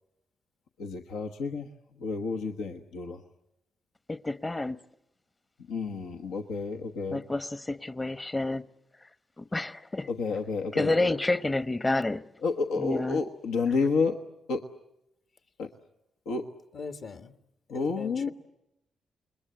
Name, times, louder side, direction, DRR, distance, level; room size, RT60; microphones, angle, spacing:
voice 1, 0.8-3.2 5.7-7.2 10.1-11.1 12.4-14.2 14.5-14.7 15.6-15.7 16.2-16.5 17.7-18.3, left 4 dB, 85° left, 1.1 m, -30 dB
voice 2, 4.1-4.8 7.1-8.7 9.4-10.1 10.7-12.3 12.8-13.2, left 2 dB, 25° left, 0.9 m, -29 dB
voice 3, 16.7-17.3 17.7-18.3, left 5 dB, 60° left, 1.7 m, -40 dB
29.0 x 21.5 x 8.1 m
supercardioid pair, 55°, 0 cm